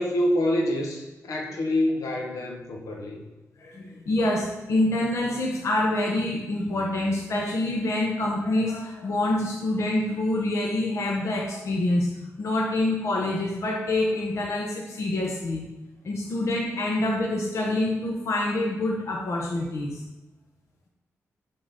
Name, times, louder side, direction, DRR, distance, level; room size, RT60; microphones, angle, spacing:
voice 1, 0.0-3.2, left 1 dB, 80° left, 0 dB, 1.3 m, -26 dB
voice 2, 3.6-15.6 16.0-20.0, left 1 dB, 60° left, -1 dB, 1.1 m, -26 dB
7.5 x 3.9 x 5.2 m, 1.1 s
wide cardioid pair, 120°, 6 cm